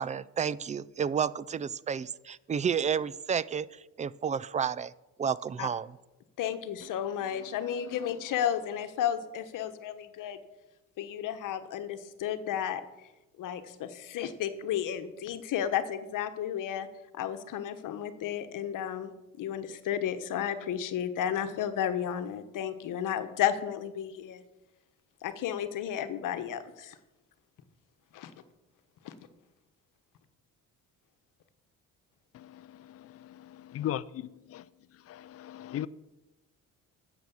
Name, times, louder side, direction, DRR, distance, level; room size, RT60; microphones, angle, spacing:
voice 1, 0.0-3.7 4.0-4.9 5.2-5.9, right 7 dB, 20° right, 0.3 m, -31 dB
voice 2, 6.4-10.4 11.0-12.8 13.4-16.9 17.1-19.1 19.4-24.4 25.2-26.9 28.1-28.3 29.0-29.1, left 9 dB, 65° left, 1.2 m, -33 dB
voice 3, 32.3-34.0 34.5-34.6 35.1-35.9, left 12 dB, 45° left, 0.5 m, -38 dB
10.5 x 7.9 x 7.0 m
cardioid pair, 100°, 34 cm